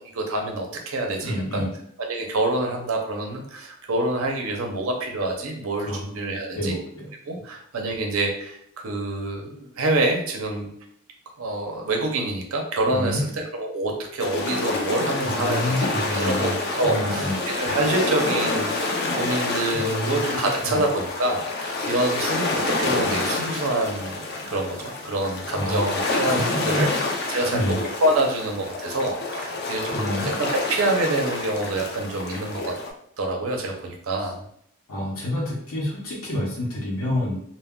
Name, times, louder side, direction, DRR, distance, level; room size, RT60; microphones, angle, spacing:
voice 1, 0.0-1.6 2.0-6.8 7.3-10.7 11.4-32.7 33.2-34.4, right 2 dB, 75° right, 2 dB, 0.6 m, -27 dB
voice 2, 1.2-1.7 5.8-6.0 6.6-7.1 12.9-13.2 15.2-16.5 16.8-17.4 19.7-20.2 20.7-20.8 25.2-25.9 26.3-26.9 27.5-27.7 29.9-30.3 34.9-37.4, left 1 dB, 80° left, -5 dB, 0.8 m, -28 dB
sound 1, 14.2-32.9, left 3 dB, 50° left, 0.4 m, -28 dB
2.2 x 2.1 x 3.5 m, 0.68 s
head